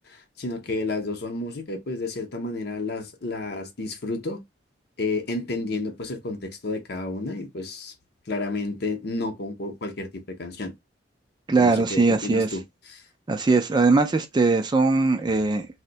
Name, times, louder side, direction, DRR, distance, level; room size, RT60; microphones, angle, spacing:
voice 1, 0.1-4.4 5.0-7.9 8.3-10.7 11.6-12.6 12.9-13.0, left 2 dB, 55° left, 0.7 m, -31 dB
voice 2, 11.5-12.6 13.3-15.7, right 3 dB, 25° right, 0.3 m, -20 dB
2.6 x 2.1 x 3.8 m
head